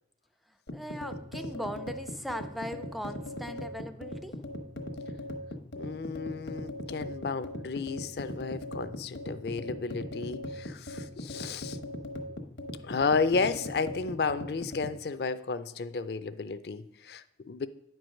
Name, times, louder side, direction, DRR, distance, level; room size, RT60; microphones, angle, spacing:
voice 1, 0.5-4.3, equal, ahead, 9 dB, 0.3 m, -39 dB
sound 1, 0.7-15.0, left 1 dB, 85° left, 1.1 m, -39 dB
voice 2, 5.7-11.8 12.8-17.7, left 4 dB, 60° left, 13 dB, 0.4 m, -32 dB
9.7 x 4.7 x 6.3 m, 0.86 s
head